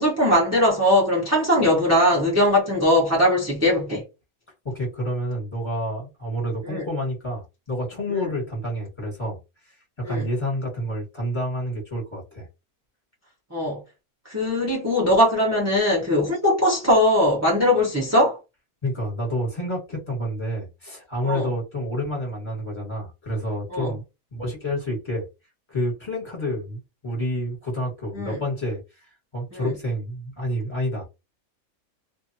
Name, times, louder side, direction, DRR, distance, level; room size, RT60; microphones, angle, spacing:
voice 1, 0.0-4.0 6.6-6.9 8.2-8.3 10.0-10.3 13.5-13.8 14.2-18.4 21.2-21.5 23.7-23.9 28.1-28.4 29.5-29.7, left 1 dB, 15° right, 0.6 m, -20 dB
voice 2, 4.6-9.4 9.6-12.5 18.8-24.0 24.3-25.3 25.7-31.1, equal, 20° left, 1.4 m, -29 dB
2.6 x 2.5 x 2.7 m
omnidirectional pair, 1.6 m